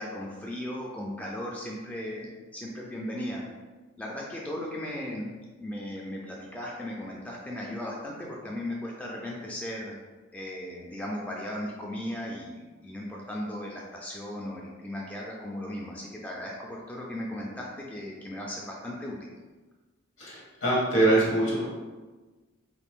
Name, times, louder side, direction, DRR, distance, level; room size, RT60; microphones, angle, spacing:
voice 1, 0.0-3.4 4.0-5.3 5.6-9.9 10.3-19.3, left 1 dB, 5° left, -3 dB, 0.3 m, -36 dB
voice 2, 20.2-21.6, right 2 dB, 70° left, -5 dB, 1.2 m, -24 dB
2.8 x 2.5 x 3.5 m, 1.3 s
head